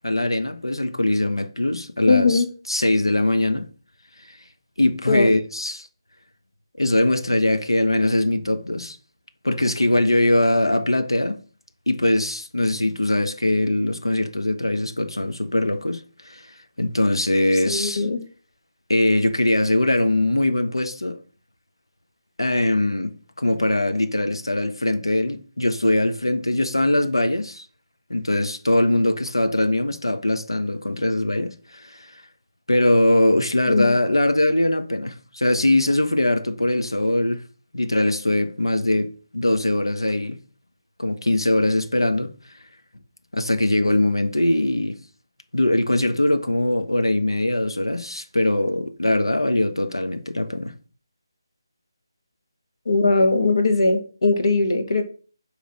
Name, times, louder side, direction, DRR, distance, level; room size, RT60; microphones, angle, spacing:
voice 1, 0.0-3.7 4.8-5.9 6.8-9.0 9.4-11.4 11.9-16.5 16.8-18.0 18.9-21.2 22.4-27.7 28.1-32.1 32.7-37.4 37.7-40.4 41.0-42.3 43.3-45.0 45.5-50.7, left 1 dB, 85° left, 1.1 m, -21 dB
voice 2, 2.1-2.5 5.1-5.3 17.6-18.2 33.7-33.9 52.9-55.0, left 3 dB, 65° left, 2.0 m, -19 dB
10.0 x 3.5 x 6.3 m
figure-of-eight pair, 155°, 2 cm